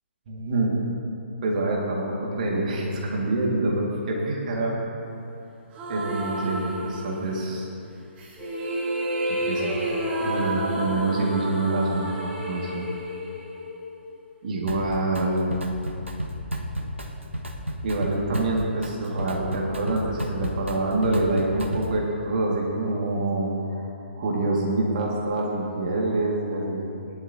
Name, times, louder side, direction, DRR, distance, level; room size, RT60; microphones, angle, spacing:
voice 1, 0.3-0.8 1.4-4.9 5.9-7.7 9.2-9.7 10.2-12.8 14.4-15.6 17.8-26.8, right 2 dB, 45° right, -3 dB, 2.1 m, -26 dB
sound 1, 5.7-7.5 8.2-14.3, right 1 dB, 25° right, 3.0 m, -30 dB
Drum kit, 14.7-15.2 15.5-22.0, equal, 85° right, 1.5 m, -32 dB
19.5 x 11.5 x 2.9 m, 2.7 s
figure-of-eight pair, 135°, 6 cm